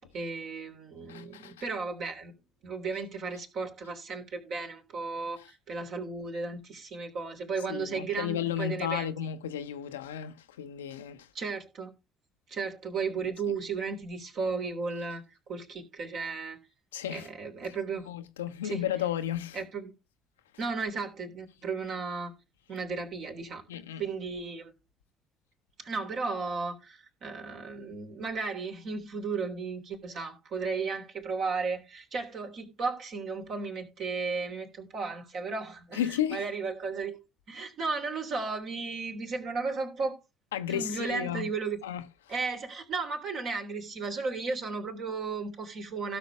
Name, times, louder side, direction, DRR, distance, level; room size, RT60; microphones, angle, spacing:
voice 1, 0.1-2.3 2.6-9.1 11.3-11.9 12.5-16.6 17.1-18.1 18.6-18.8 19.5-19.9 20.6-22.3 22.7-23.6 24.0-24.7 25.8-37.2 37.5-40.2 40.7-41.8 42.3-46.2, right 4 dB, 55° right, 3.1 m, -34 dB
voice 2, 1.1-1.5 7.7-11.3 16.9-17.3 18.0-19.6 23.7-24.0 35.9-36.5 40.5-41.5 41.8-42.0, left 10 dB, 80° left, 0.8 m, -33 dB
16.5 x 6.2 x 3.5 m
figure-of-eight pair, 55°, 0 cm